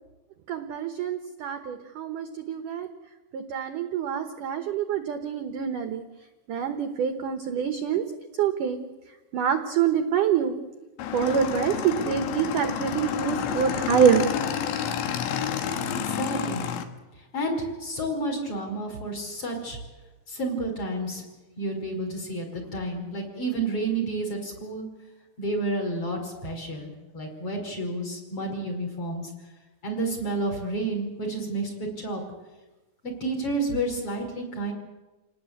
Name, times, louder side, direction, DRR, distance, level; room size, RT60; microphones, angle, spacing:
voice 1, 0.5-2.9 3.3-6.0 6.5-8.0 8.4-8.8 9.3-10.6 11.1-14.2, right 8 dB, 70° right, 7 dB, 2.0 m, -26 dB
Motorcycle / Engine, 11.0-16.8, left 8 dB, 75° left, 3.6 m, -29 dB
voice 2, 15.9-16.7 17.2-19.8 20.3-21.2 21.6-24.9 25.4-29.3 29.8-32.2 33.0-34.7, right 2 dB, 30° left, 1 dB, 5.7 m, -30 dB
28.5 x 18.5 x 8.4 m, 1.1 s
omnidirectional pair, 5.3 m